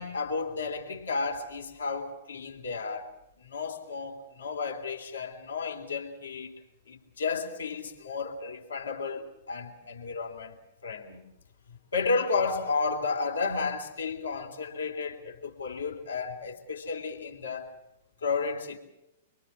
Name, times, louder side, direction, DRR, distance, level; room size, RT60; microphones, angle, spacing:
voice 1, 0.0-3.1 3.4-6.5 6.9-10.6 10.8-11.2 11.7-17.7 18.2-18.8, left 4 dB, 70° left, 3.3 m, -32 dB
24.5 x 24.0 x 6.3 m
figure-of-eight pair, 105°, 0 cm